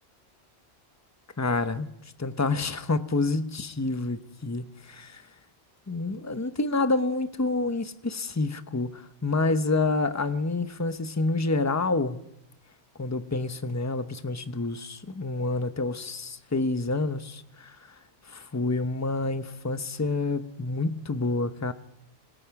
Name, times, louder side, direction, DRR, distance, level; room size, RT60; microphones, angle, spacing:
voice 1, 1.4-1.9 2.2-5.2 5.9-12.2 13.0-17.8 18.3-21.7, left 3 dB, 15° left, 0.8 m, -28 dB
27.0 x 21.0 x 4.8 m
omnidirectional pair, 1.1 m